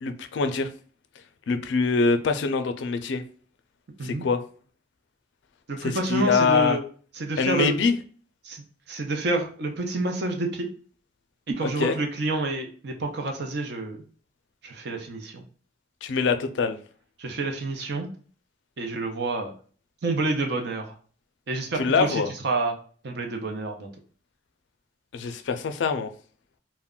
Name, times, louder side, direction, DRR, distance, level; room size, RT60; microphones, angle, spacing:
voice 1, 0.0-0.7 1.5-3.2 4.0-4.4 5.8-6.8 7.4-7.9 11.6-12.0 16.0-16.8 21.7-22.3 25.1-26.1, left 4 dB, 75° left, 8 dB, 0.4 m, -24 dB
voice 2, 5.7-6.8 7.2-7.7 8.4-10.7 11.5-14.0 14.6-15.4 17.2-18.1 18.8-19.5 20.0-20.9 21.5-22.8 23.0-23.9, right 2 dB, 65° right, 3 dB, 0.6 m, -28 dB
2.3 x 2.1 x 3.6 m, 0.42 s
head